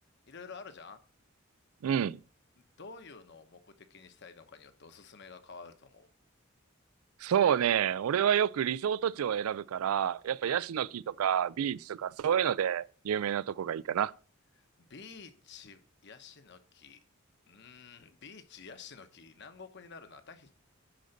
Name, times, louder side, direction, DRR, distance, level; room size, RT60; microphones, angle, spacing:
voice 1, 0.3-1.0 2.6-6.1 10.4-10.6 14.5-17.0 17.5-20.5, left 5 dB, 55° left, 1.1 m, -50 dB
voice 2, 1.8-2.2 7.2-14.1, right 9 dB, 90° right, 0.3 m, -29 dB
10.0 x 3.9 x 6.6 m
head